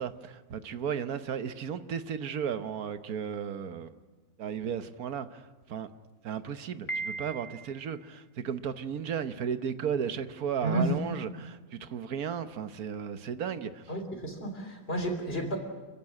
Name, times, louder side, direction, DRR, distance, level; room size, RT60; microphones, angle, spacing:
voice 1, 0.0-3.9 4.4-5.9 6.2-13.9, right 7 dB, 75° right, 1.5 m, -34 dB
Piano, 6.9-7.9, right 3 dB, 25° left, 1.1 m, -37 dB
voice 2, 10.6-11.0 13.9-15.6, right 1 dB, 40° left, 3.7 m, -31 dB
28.0 x 15.5 x 9.8 m
omnidirectional pair, 1.6 m